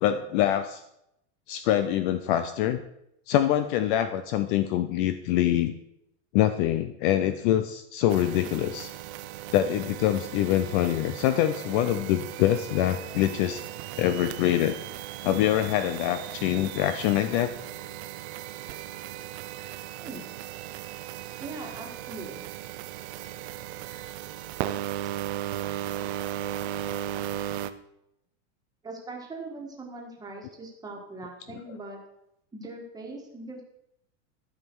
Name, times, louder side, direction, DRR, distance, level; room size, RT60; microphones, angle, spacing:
voice 1, 0.0-0.8 1.5-2.8 3.3-5.7 6.3-8.9 9.5-13.6 14.0-14.8 15.2-17.5, left 12 dB, 45° left, 11 dB, 0.5 m, -25 dB
sound 1, 8.1-27.7, right 13 dB, 60° right, 0.7 m, -37 dB
voice 2, 20.0-20.3 21.4-22.4 28.8-32.0 32.5-33.6, right 2 dB, 10° right, 0 dB, 1.6 m, -40 dB
12.5 x 5.4 x 4.6 m, 0.81 s
supercardioid pair, 155°, 36 cm